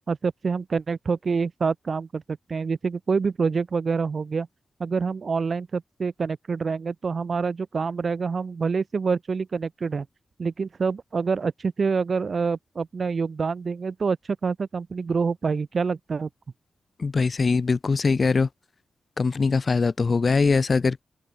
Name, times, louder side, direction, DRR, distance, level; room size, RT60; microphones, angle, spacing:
voice 1, 0.1-4.5 4.8-10.1 10.4-14.2 14.4-16.3, right 5 dB, 45° right, 2.0 m, -26 dB
voice 2, 17.0-18.5 19.2-21.0, left 4 dB, 40° left, 0.9 m, -22 dB
wide cardioid pair, 130°, 0 cm